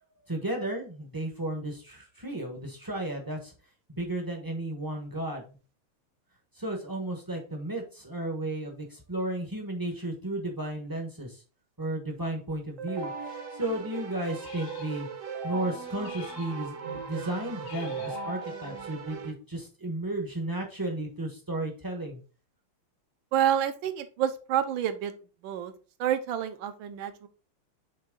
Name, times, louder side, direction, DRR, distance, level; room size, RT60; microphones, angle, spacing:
voice 1, 0.3-3.5 3.9-5.6 6.5-11.4 11.8-15.1 15.4-22.2, right 1 dB, 20° right, 1 dB, 0.6 m, -34 dB
Keyboard (musical), 12.8-19.3, right 5 dB, 50° right, 1.1 m, -38 dB
sound 1, 14.4-15.4 16.0-17.0 17.6-18.8, left 6 dB, 70° left, 1.5 m, -47 dB
voice 2, 23.3-25.1 25.4-25.7 26.0-27.3, right 10 dB, 70° right, 10 dB, 1.4 m, -28 dB
7.4 x 3.5 x 3.7 m, 0.35 s
omnidirectional pair, 2.4 m